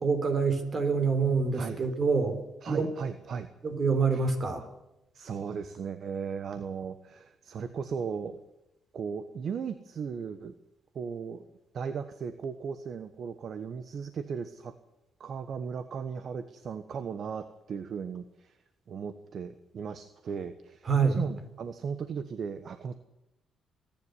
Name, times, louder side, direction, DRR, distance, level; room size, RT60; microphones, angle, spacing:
voice 1, 0.0-2.4 2.7-2.9 3.6-4.7 20.9-21.2, right 5 dB, 40° right, 8 dB, 4.2 m, -26 dB
voice 2, 2.6-3.5 4.1-4.3 5.1-8.4 8.9-10.5 10.9-11.4 11.7-14.7 15.2-18.5 18.9-22.9, right 6 dB, 55° right, 11 dB, 1.2 m, -37 dB
25.0 x 10.5 x 9.8 m, 0.92 s
cardioid pair, 90°, 0 cm